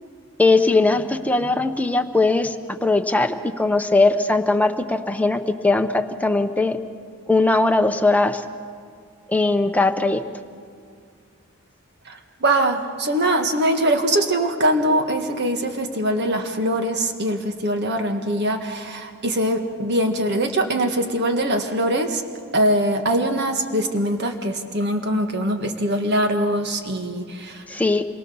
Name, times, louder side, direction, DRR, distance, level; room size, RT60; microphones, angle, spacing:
voice 1, 0.4-2.6 2.8-6.8 7.3-8.4 9.3-10.2 27.7-28.0, left 3 dB, 5° left, 6 dB, 0.9 m, -19 dB
voice 2, 12.4-22.2 22.5-27.6, right 1 dB, 55° right, 5 dB, 1.8 m, -22 dB
27.0 x 22.5 x 7.1 m, 2.2 s
head